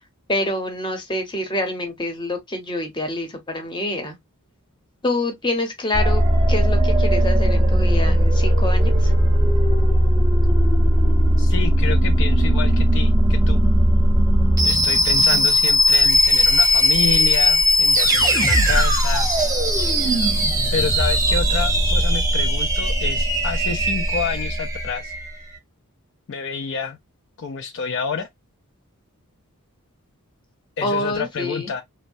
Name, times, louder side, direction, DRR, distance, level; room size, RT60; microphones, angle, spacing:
voice 1, 0.3-4.2 5.0-9.1 30.8-31.7, left 1 dB, 20° left, 0.8 m, -26 dB
sound 1, 5.9-25.3, equal, 15° right, 0.7 m, -18 dB
voice 2, 11.4-13.6 14.7-19.3 20.7-25.1 26.3-27.0 27.4-28.3 30.8-31.8, left 6 dB, 55° left, 0.4 m, -28 dB
3.1 x 2.1 x 2.6 m
head